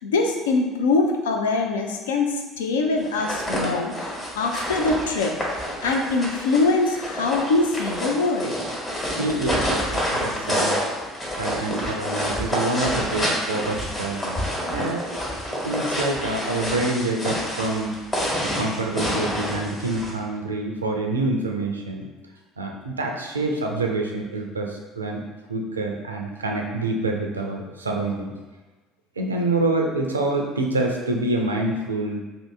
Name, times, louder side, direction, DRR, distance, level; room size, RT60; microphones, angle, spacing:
voice 1, 0.0-8.5, left 3 dB, 75° left, 2 dB, 0.3 m, -23 dB
sound 1, 3.0-20.1, equal, 25° left, 1.2 m, -28 dB
voice 2, 9.2-10.8 11.3-15.2 15.6-18.0 18.4-22.1 22.6-25.2 25.5-28.3 29.2-32.2, right 2 dB, 90° right, 2 dB, 0.3 m, -26 dB
2.7 x 2.6 x 3.2 m, 1.2 s
figure-of-eight pair, 60°, 0 cm